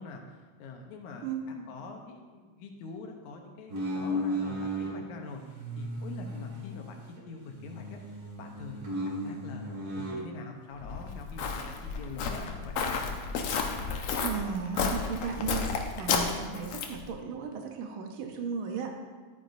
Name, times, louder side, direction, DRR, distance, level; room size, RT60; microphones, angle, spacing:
voice 1, 0.0-7.0 7.2-13.0, left 3 dB, 90° left, 3 dB, 2.4 m, -45 dB
voice 2, 1.2-1.8 13.8-19.0, right 5 dB, 70° right, 4 dB, 1.2 m, -36 dB
sound 1, 3.7-5.0 5.5-7.2 7.5-10.2, equal, 50° right, 2.7 m, -35 dB
Walk footsteps, 10.8-17.1, left 5 dB, 70° left, 1.5 m, -32 dB
12.0 x 9.2 x 2.6 m, 1.4 s
omnidirectional pair, 3.3 m